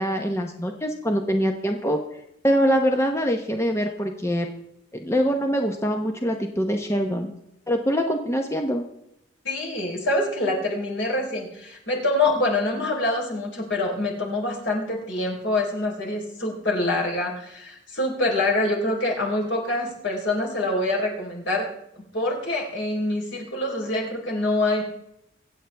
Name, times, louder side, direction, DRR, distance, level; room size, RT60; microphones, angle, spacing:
voice 1, 0.0-2.0 2.4-4.5 4.9-7.3 7.7-8.8, equal, 15° left, 4 dB, 0.9 m, -24 dB
voice 2, 9.4-21.7 22.1-24.8, left 2 dB, 70° left, -1 dB, 4.0 m, -25 dB
24.5 x 8.2 x 3.4 m, 0.82 s
head